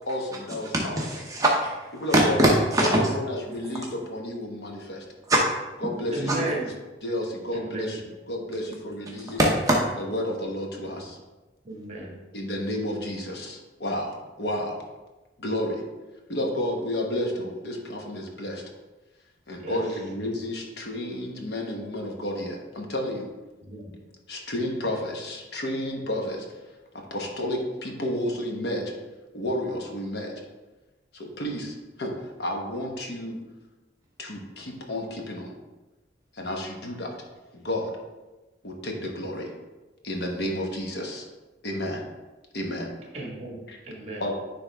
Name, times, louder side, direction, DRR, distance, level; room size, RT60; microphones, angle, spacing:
voice 1, 0.0-1.0 1.9-2.4 2.8-5.0 5.8-6.5 7.0-8.0 8.3-9.4 10.0-11.2 12.3-14.8 15.4-15.8 16.3-18.6 19.5-23.3 24.3-26.5 27.1-28.8 29.3-30.3 31.1-33.4 34.2-35.5 36.3-37.1 37.5-37.9 38.6-39.5 40.0-41.3 41.6-42.0 42.5-42.9 43.7-43.8 44.2-44.3, left 1 dB, 65° left, 1.1 m, -31 dB
voice 2, 0.7-1.8 2.1-3.0 6.3-6.4 9.4-9.8, right 1 dB, 20° right, 0.7 m, -21 dB
voice 3, 6.1-6.7 7.5-7.9 10.8-11.0 11.6-12.1 19.6-19.8 23.6-23.9 43.1-43.6 43.8-44.2, right 2 dB, 35° right, 1.6 m, -34 dB
10.0 x 3.5 x 3.4 m
head